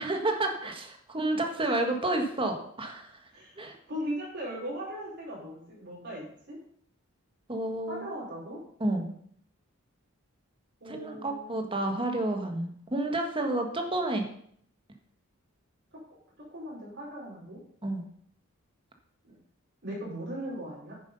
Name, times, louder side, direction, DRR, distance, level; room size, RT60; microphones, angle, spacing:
voice 1, 0.0-3.1 3.6-3.8 7.5-8.1 8.8-9.1 10.9-14.3 17.8-18.1, right 2 dB, 25° right, 4 dB, 1.7 m, -30 dB
voice 2, 3.3-3.6 3.9-6.6 7.9-8.6 10.8-11.8 16.5-17.6 19.2-19.3 19.8-20.9, equal, 55° right, -5 dB, 4.9 m, -38 dB
9.7 x 9.7 x 5.5 m, 0.64 s
head